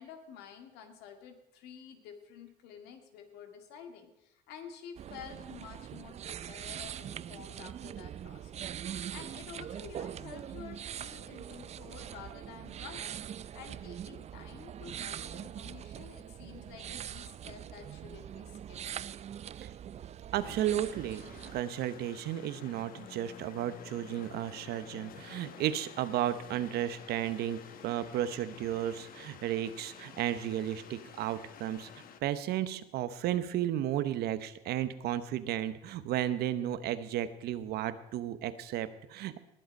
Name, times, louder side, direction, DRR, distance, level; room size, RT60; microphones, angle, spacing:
voice 1, 0.0-13.1 13.5-18.8, left 7 dB, 90° left, 6 dB, 2.0 m, -50 dB
sound 1, 5.0-21.6, right 10 dB, 40° right, 0.4 m, -43 dB
voice 2, 20.3-21.2 21.5-31.9 32.2-39.4, right 11 dB, 75° right, 13 dB, 0.9 m, -33 dB
sound 2, 20.4-32.2, left 8 dB, 60° left, 1.2 m, -51 dB
19.5 x 7.9 x 5.3 m, 0.85 s
cardioid pair, 100°, 17 cm